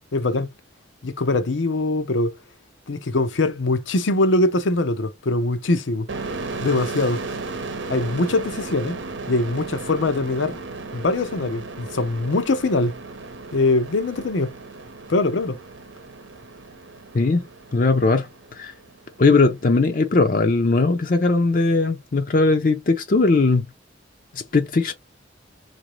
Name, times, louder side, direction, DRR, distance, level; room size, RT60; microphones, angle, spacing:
voice 1, 0.1-0.5 1.0-2.4 2.9-6.1 6.6-7.2 7.9-9.0 9.3-10.6 10.9-12.9 13.5-14.5 15.1-15.6, left 2 dB, 85° left, 0.7 m, -22 dB
sound 1, 6.1-19.5, right 3 dB, 85° right, 0.8 m, -35 dB
voice 2, 17.1-17.5 17.7-18.7 19.2-23.7 24.3-24.9, left 3 dB, 45° left, 0.5 m, -19 dB
3.8 x 2.6 x 3.0 m
head